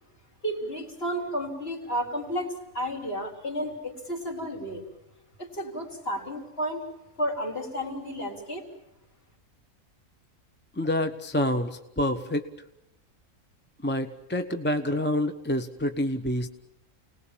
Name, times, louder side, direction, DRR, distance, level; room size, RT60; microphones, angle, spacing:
voice 1, 0.4-4.8 5.4-6.8 7.2-8.7, equal, 45° left, 0 dB, 4.3 m, -32 dB
voice 2, 10.8-12.4 13.8-16.5, left 1 dB, 10° left, 7 dB, 0.9 m, -27 dB
29.5 x 19.5 x 7.4 m, 0.90 s
omnidirectional pair, 1.4 m